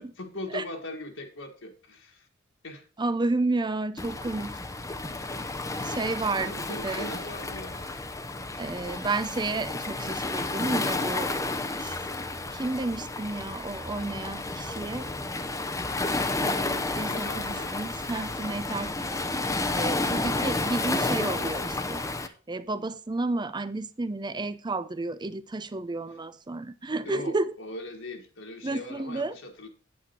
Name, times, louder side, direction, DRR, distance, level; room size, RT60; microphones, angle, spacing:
voice 1, 0.2-2.3 2.6-2.9 6.4-7.9 17.0-17.8 27.1-29.7, left 2 dB, 65° left, 1.7 m, -40 dB
voice 2, 3.0-4.6 5.8-7.1 8.6-12.0 12.5-15.1 16.4-22.0 22.5-27.5 28.6-29.3, right 2 dB, 20° right, 0.6 m, -31 dB
Waves surf, 4.0-22.3, left 2 dB, 15° left, 0.7 m, -31 dB
9.1 x 8.5 x 4.3 m
head